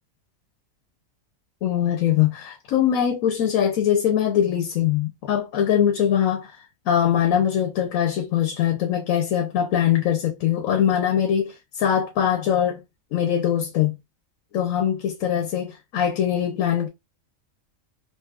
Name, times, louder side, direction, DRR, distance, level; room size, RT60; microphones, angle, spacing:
voice 1, 1.6-6.6 6.9-12.8 13.1-14.0 14.5-16.9, left 9 dB, 85° left, 1.1 m, -22 dB
3.9 x 2.6 x 2.4 m
omnidirectional pair, 1.4 m